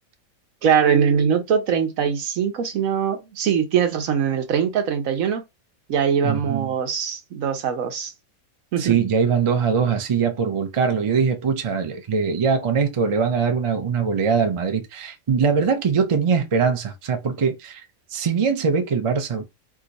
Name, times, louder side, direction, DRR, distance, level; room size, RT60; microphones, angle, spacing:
voice 1, 0.6-5.4 5.9-8.1 8.7-9.0, right 7 dB, 75° right, 1.2 m, -22 dB
voice 2, 6.2-6.7 8.8-17.8 18.1-19.4, right 6 dB, 55° right, 0.3 m, -22 dB
2.8 x 2.4 x 3.9 m
omnidirectional pair, 1.4 m